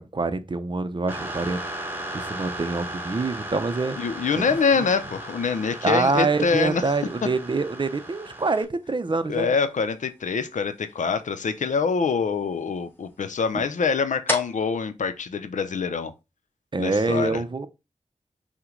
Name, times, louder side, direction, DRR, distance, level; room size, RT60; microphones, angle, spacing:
voice 1, 0.0-1.6 2.1-4.0 4.4-4.5 5.8-9.5 13.5-13.6 16.7-17.7, right 3 dB, 40° right, 0.5 m, -25 dB
sound 1, 1.1-8.6, right 1 dB, 15° right, 1.0 m, -36 dB
sound 2, 2.6-16.2, equal, 15° left, 2.1 m, -42 dB
voice 2, 4.0-6.8 9.3-16.1 16.8-17.4, left 5 dB, 85° left, 0.5 m, -25 dB
5.7 x 2.2 x 3.7 m
wide cardioid pair, 55°, 12 cm